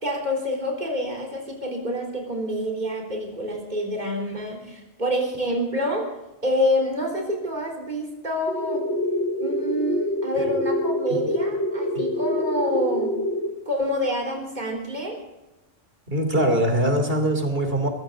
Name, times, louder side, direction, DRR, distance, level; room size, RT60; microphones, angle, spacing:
voice 1, 0.0-6.1 6.4-8.9 9.4-13.1 13.7-15.1, equal, 45° right, -1 dB, 3.8 m, -27 dB
sound 1, 8.5-13.5, left 1 dB, 90° left, 1.5 m, -26 dB
voice 2, 16.1-17.9, right 1 dB, 60° right, 5 dB, 3.4 m, -22 dB
22.0 x 16.0 x 3.9 m, 0.98 s
omnidirectional pair, 1.1 m